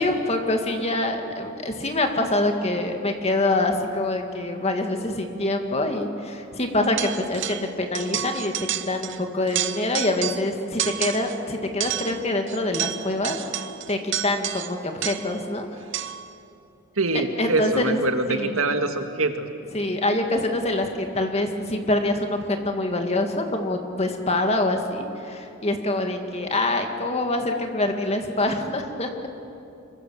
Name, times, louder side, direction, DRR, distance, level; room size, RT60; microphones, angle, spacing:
voice 1, 0.0-8.5 8.9-13.4 13.9-15.7 17.4-18.0 18.3-18.6 19.7-29.1, left 2 dB, 30° left, 4 dB, 2.0 m, -25 dB
sound 1, 7.0-7.7 7.9-9.2 9.5-10.5 10.8-11.4 11.8-15.4 15.9-16.3, right 12 dB, 55° right, 0.8 m, -30 dB
voice 2, 17.0-19.5, right 2 dB, 75° right, 6 dB, 1.8 m, -24 dB
26.0 x 23.0 x 7.2 m, 2.7 s
head